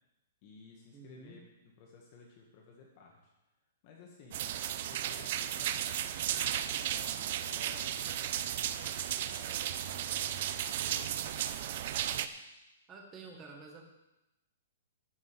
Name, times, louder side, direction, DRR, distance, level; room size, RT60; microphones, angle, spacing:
voice 1, 0.4-3.3 3.8-4.5 4.8-6.0 6.5-8.9 9.3-11.2, left 4 dB, 30° left, -1 dB, 1.7 m, -56 dB
voice 2, 0.9-1.4 12.9-13.8, right 4 dB, 15° right, 0 dB, 1.7 m, -50 dB
sound 1, 4.3-12.3, right 11 dB, 40° right, 0.5 m, -34 dB
12.5 x 5.4 x 8.0 m, 0.95 s
hypercardioid pair, 175°, 0 cm